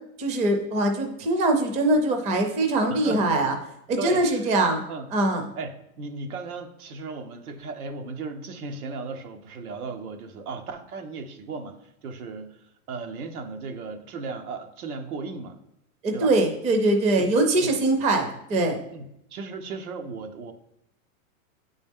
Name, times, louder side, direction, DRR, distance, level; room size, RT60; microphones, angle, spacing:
voice 1, 0.2-3.5 3.9-4.8 5.1-5.5 16.0-18.8, right 2 dB, 15° right, 4 dB, 0.5 m, -22 dB
voice 2, 2.9-3.2 4.0-4.5 4.9-5.1 5.6-11.8 12.0-12.6 12.9-15.6 16.1-16.3 17.2-17.3 17.6-17.7 18.3-18.6 18.9-20.5, right 4 dB, 90° right, 5 dB, 1.1 m, -36 dB
8.7 x 4.1 x 3.6 m, 0.80 s
supercardioid pair, 155°, 43 cm